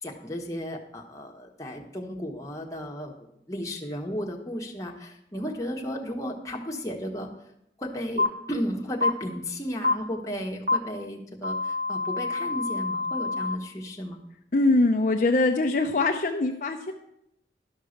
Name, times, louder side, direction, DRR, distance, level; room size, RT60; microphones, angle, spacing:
voice 1, 0.0-3.1 3.5-7.3 7.8-14.2, equal, 20° left, 0 dB, 1.2 m, -34 dB
sound 1, 8.2-8.3 9.0-9.1 9.8-9.9 10.7-10.8 11.4-13.5, left 3 dB, 40° right, 1.1 m, -26 dB
voice 2, 14.5-16.9, left 2 dB, 45° left, 3 dB, 0.6 m, -23 dB
12.0 x 5.6 x 6.5 m, 0.79 s
head